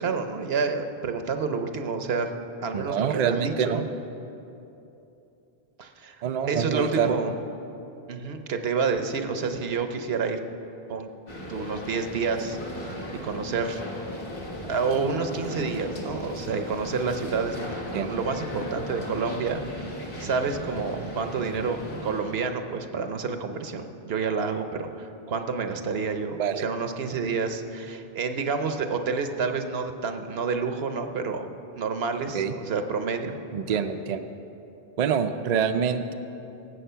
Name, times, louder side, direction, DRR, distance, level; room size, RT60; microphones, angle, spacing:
voice 1, 0.0-2.3 2.6-3.8 5.8-7.3 8.1-10.4 10.9-11.1 11.5-12.6 13.2-13.8 14.7-19.6 20.2-31.5 31.8-33.4 33.7-33.8, right 5 dB, 75° right, 7 dB, 1.0 m, -29 dB
voice 2, 2.7-3.9 6.2-7.2 17.9-18.1 26.4-26.6 32.3-32.5 33.5-34.3 35.0-36.1, right 7 dB, 50° right, 7 dB, 0.5 m, -26 dB
sound 1, 11.3-22.4, left 1 dB, 60° left, 1.6 m, -37 dB
18.0 x 7.5 x 5.6 m, 2.9 s
omnidirectional pair, 1.0 m